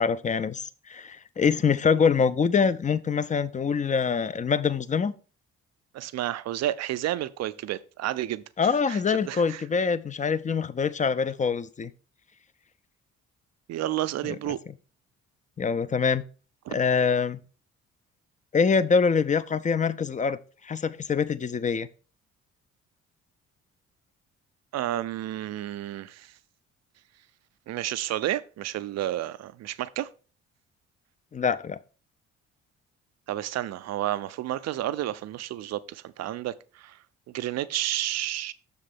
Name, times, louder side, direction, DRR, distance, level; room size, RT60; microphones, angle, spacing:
voice 1, 0.0-5.1 8.6-11.9 15.6-16.2 16.7-17.4 18.5-20.4 20.6-21.9 31.3-31.8, left 6 dB, 20° left, 0.5 m, -24 dB
voice 2, 5.9-8.4 8.9-9.6 13.7-14.6 16.7-16.8 24.7-26.3 27.7-30.1 33.3-37.0 37.3-38.5, right 13 dB, 45° right, 0.5 m, -31 dB
6.7 x 3.7 x 5.7 m
figure-of-eight pair, 45°, 36 cm